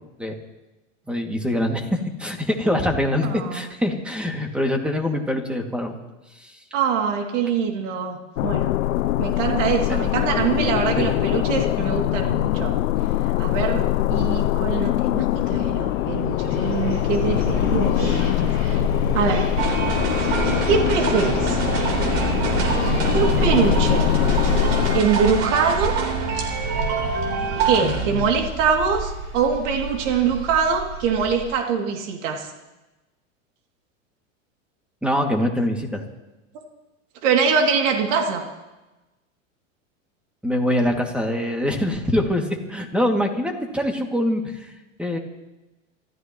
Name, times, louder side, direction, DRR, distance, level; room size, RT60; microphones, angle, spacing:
voice 1, 1.1-6.0 6.4-6.5 9.9-10.0 11.0-11.1 27.8-28.2 35.0-36.0 40.4-44.7 45.0-45.2, left 1 dB, 5° right, 2 dB, 2.4 m, -24 dB
voice 2, 3.2-3.7 6.7-8.7 9.2-12.8 13.4-13.8 14.1-18.8 19.1-19.5 20.7-21.6 23.1-24.1 24.9-25.9 27.6-32.5 37.2-38.4, right 6 dB, 65° right, 2 dB, 2.8 m, -23 dB
sound 1, 8.4-25.0, left 15 dB, 75° left, 0.7 m, -23 dB
sound 2, 15.8-31.5, right 4 dB, 35° right, 5.8 m, -30 dB
sound 3, 19.6-28.0, right 4 dB, 50° right, 3.9 m, -26 dB
27.0 x 14.0 x 3.1 m, 1.0 s
hypercardioid pair, 110°, 39 cm